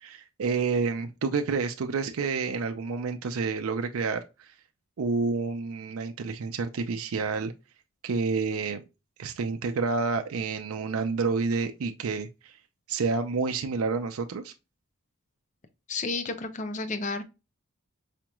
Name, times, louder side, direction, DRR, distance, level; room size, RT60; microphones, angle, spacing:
voice 1, 0.0-4.5 5.0-7.5 8.0-8.8 9.2-12.6 12.9-14.5, right 4 dB, 75° right, 0.4 m, -29 dB
voice 2, 15.9-17.2, left 3 dB, 35° left, 0.5 m, -31 dB
4.9 x 3.0 x 2.2 m
head